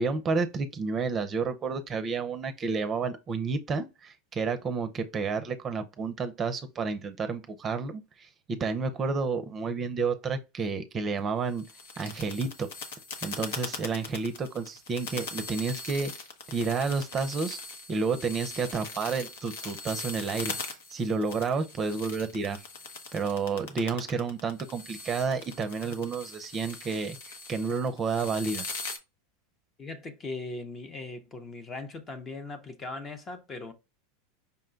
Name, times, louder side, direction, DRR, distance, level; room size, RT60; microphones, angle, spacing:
voice 1, 0.0-11.6 12.0-12.7 13.2-16.1 16.5-17.6 17.9-22.6 23.1-28.7, right 4 dB, 25° right, 0.6 m, -30 dB
sound 1, 11.5-29.0, left 4 dB, 75° left, 0.9 m, -41 dB
voice 2, 29.8-33.7, left 3 dB, 25° left, 0.7 m, -39 dB
5.5 x 2.2 x 3.8 m
supercardioid pair, 125°, 0 cm